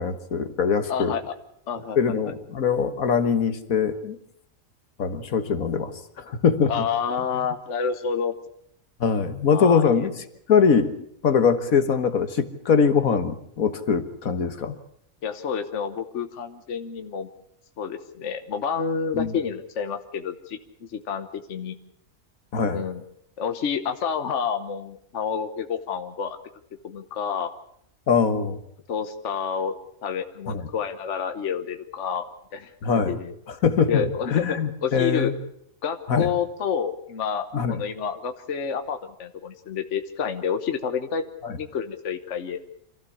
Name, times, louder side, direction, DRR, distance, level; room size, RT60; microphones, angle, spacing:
voice 1, 0.0-1.2 2.0-4.2 5.0-6.9 9.0-10.1 10.5-10.9 11.2-14.8 19.1-19.3 22.5-22.8 28.1-28.6 30.5-30.7 32.8-33.2 33.5-34.0 34.3-35.3 36.1-36.3 37.5-37.8 41.4-41.6, left 6 dB, 75° left, 10 dB, 1.8 m, -22 dB
voice 2, 0.9-1.3 1.7-2.3 6.7-8.3 9.5-10.1 15.2-17.3 17.8-21.8 22.7-23.0 23.4-26.4 26.8-27.5 28.9-33.3 33.9-35.3 35.8-41.3 41.6-42.6, left 7 dB, 60° left, 8 dB, 1.4 m, -29 dB
25.5 x 15.5 x 8.4 m, 0.70 s
omnidirectional pair, 1.5 m